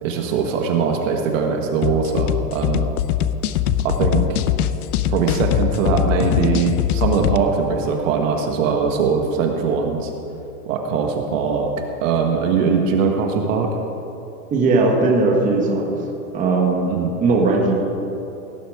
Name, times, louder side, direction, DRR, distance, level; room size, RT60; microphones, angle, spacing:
voice 1, 0.0-2.9 3.8-4.4 5.1-10.1 10.7-11.7 12.0-13.7 16.9-17.1, right 5 dB, 55° right, 3 dB, 1.8 m, -21 dB
sound 1, 1.8-7.4, left 10 dB, 70° left, 0.8 m, -21 dB
voice 2, 14.5-16.0 16.3-16.8 17.2-17.7, right 3 dB, 15° right, -1 dB, 1.6 m, -18 dB
17.5 x 10.0 x 5.0 m, 2.9 s
supercardioid pair, 160°, 47 cm